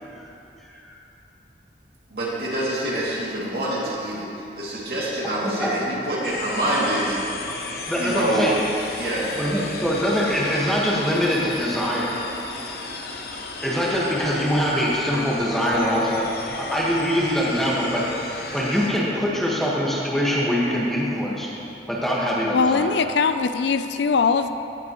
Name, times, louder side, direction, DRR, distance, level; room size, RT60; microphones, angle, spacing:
voice 1, 2.1-4.3 4.6-7.2 8.0-8.5 9.0-9.3, right 1 dB, 60° right, -7 dB, 2.5 m, -26 dB
voice 2, 5.4-5.9 7.9-8.5 9.3-12.2 13.6-18.1 18.5-21.5 21.9-22.9, equal, ahead, -6 dB, 1.4 m, -23 dB
sound 1, 6.2-18.9, left 3 dB, 60° left, 0.9 m, -35 dB
voice 3, 22.5-24.5, left 5 dB, 80° left, 10 dB, 0.4 m, -21 dB
17.0 x 7.6 x 3.0 m, 2.8 s
head